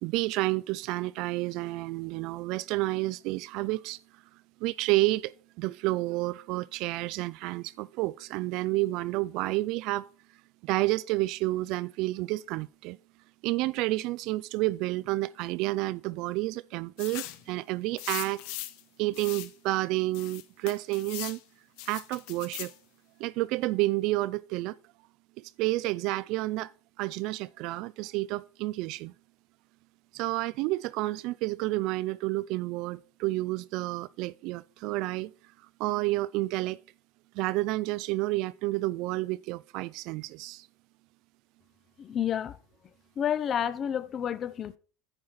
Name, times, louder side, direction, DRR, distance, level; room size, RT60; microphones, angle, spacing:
voice 1, 0.0-4.0 4.6-5.3 5.6-10.1 10.6-13.0 13.4-18.4 19.0-21.4 21.9-22.7 23.2-24.8 25.4-26.7 27.0-29.1 30.1-35.3 35.8-36.8 37.4-40.7, right 19 dB, 55° right, 0.3 m, -30 dB
sound 1, 17.0-17.4 18.0-18.8 19.1-19.5 20.1-21.4 21.8-22.7, left 15 dB, 65° left, 0.8 m, -39 dB
voice 2, 42.0-42.6 43.2-44.8, left 9 dB, 30° left, 0.5 m, -30 dB
9.6 x 5.6 x 4.6 m
supercardioid pair, 155°, 0 cm